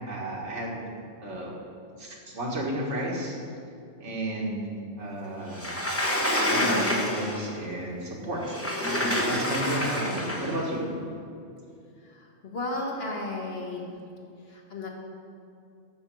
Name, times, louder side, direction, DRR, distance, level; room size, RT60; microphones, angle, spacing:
voice 1, 0.1-0.8 1.2-1.5 2.0-3.4 4.0-4.7 5.0-5.8 6.4-10.9, right 1 dB, 75° right, -2 dB, 2.0 m, -32 dB
Sliding door, 5.5-7.5 8.4-10.6, left 1 dB, 10° left, 1.0 m, -27 dB
voice 2, 12.0-13.9 14.5-14.9, left 2 dB, 55° left, -1 dB, 1.8 m, -34 dB
8.8 x 7.1 x 6.9 m, 2.5 s
omnidirectional pair, 1.2 m